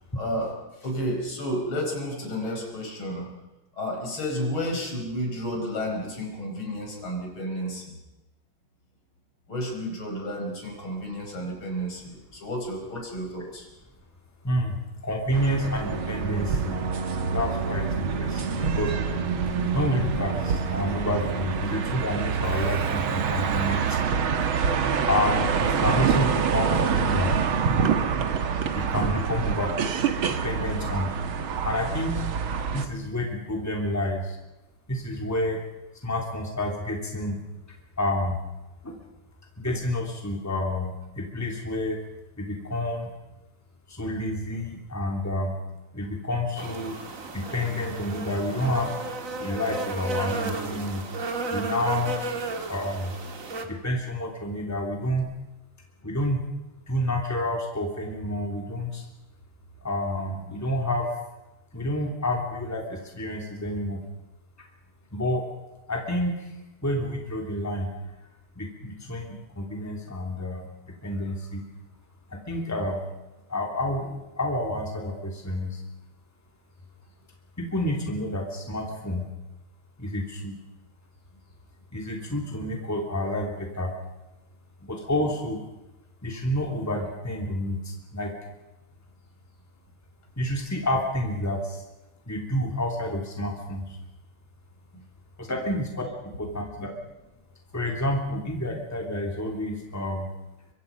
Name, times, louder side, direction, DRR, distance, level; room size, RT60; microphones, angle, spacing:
voice 1, 0.2-0.5 0.8-3.3 3.7-8.0 9.5-13.7 94.9-95.0 95.5-95.6, equal, 70° left, 1 dB, 5.8 m, -31 dB
voice 2, 14.4-14.8 15.0-16.8 17.2-19.1 19.7-24.0 25.1-27.3 28.7-29.7 30.4-31.1 31.6-32.1 32.7-34.4 34.9-35.6 36.0-37.4 38.0-38.4 38.8-39.0 39.6-42.0 42.4-43.1 43.9-45.6 45.9-48.9 49.4-51.1 51.5-52.2 52.7-53.1 53.6-55.3 56.0-56.4 56.9-59.1 59.8-61.2 61.7-64.0 64.6-64.7 65.1-65.4 65.9-66.5 66.8-67.9 68.5-70.7 71.0-71.6 72.3-73.0 73.5-75.8 77.6-79.2 80.0-80.6 81.9-83.9 84.8-85.6 86.2-88.3 90.4-91.8 92.3-94.0 95.4-96.1 96.4-96.9 97.7-100.3, left 1 dB, 5° left, 1 dB, 3.1 m, -29 dB
sound 1, 15.3-32.9, right 6 dB, 70° right, 2.2 m, -26 dB
Keyboard (musical), 15.8-23.9, right 4 dB, 20° right, 1.9 m, -34 dB
sound 2, 46.6-53.6, right 3 dB, 40° right, 2.1 m, -33 dB
24.5 x 24.0 x 5.3 m, 1.0 s
omnidirectional pair, 2.3 m